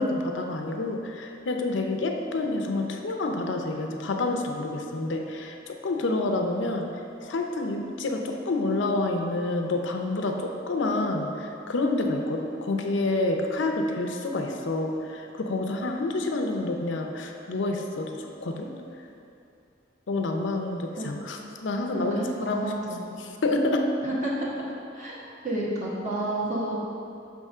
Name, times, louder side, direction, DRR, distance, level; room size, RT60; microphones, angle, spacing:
voice 1, 0.0-6.9 7.2-18.7 20.1-22.1 22.4-22.7 23.2-23.9, left 2 dB, 75° left, 3 dB, 0.6 m, -28 dB
voice 2, 21.9-23.0 24.0-24.5 24.9-25.2 25.4-26.8, right 1 dB, 40° right, -6 dB, 1.3 m, -30 dB
6.0 x 3.6 x 5.4 m, 2.6 s
head